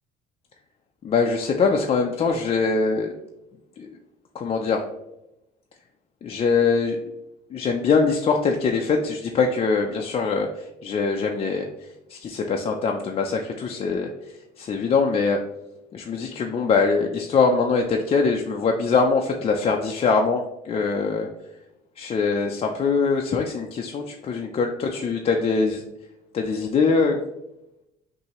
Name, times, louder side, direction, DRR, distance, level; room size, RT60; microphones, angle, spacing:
voice 1, 1.0-3.1 3.8-4.0 4.3-4.8 6.2-7.0 7.5-11.7 12.1-14.1 14.6-15.4 15.9-21.3 22.0-25.8 26.3-27.2, left 4 dB, 35° left, 2 dB, 0.4 m, -23 dB
5.5 x 2.7 x 2.9 m, 0.89 s
cardioid pair, 110°, 17 cm